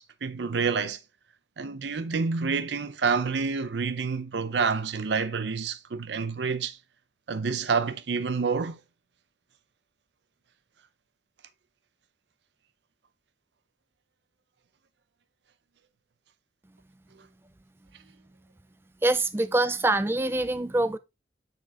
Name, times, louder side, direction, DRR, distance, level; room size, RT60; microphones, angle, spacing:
voice 1, 0.2-1.0 1.6-6.8 7.3-8.8, right 5 dB, 75° right, 0.6 m, -28 dB
voice 2, 19.0-21.0, right 2 dB, 10° right, 0.3 m, -24 dB
7.0 x 4.3 x 3.6 m
head